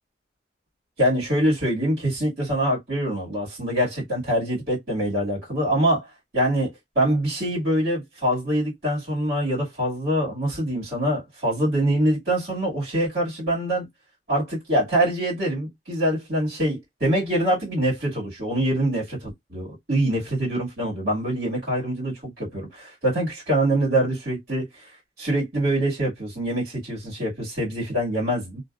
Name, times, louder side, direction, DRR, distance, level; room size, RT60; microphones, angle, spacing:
voice 1, 1.0-6.1 6.3-6.7 7.0-13.9 14.3-24.9 25.2-28.6, right 1 dB, 60° right, 1.9 m, -24 dB
2.8 x 2.7 x 2.2 m
head